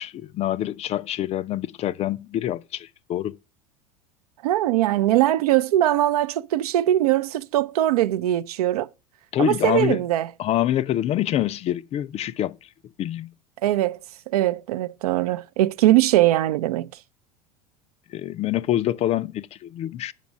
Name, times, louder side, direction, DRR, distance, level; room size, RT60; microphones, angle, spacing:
voice 1, 0.0-3.4 9.3-10.0 10.4-12.5 13.0-13.3 18.1-20.1, left 12 dB, 35° left, 0.4 m, -26 dB
voice 2, 4.4-8.9 9.4-10.3 13.6-14.0 14.3-16.9, right 14 dB, 80° right, 0.4 m, -21 dB
7.4 x 5.2 x 6.1 m
hypercardioid pair, 90°, 19 cm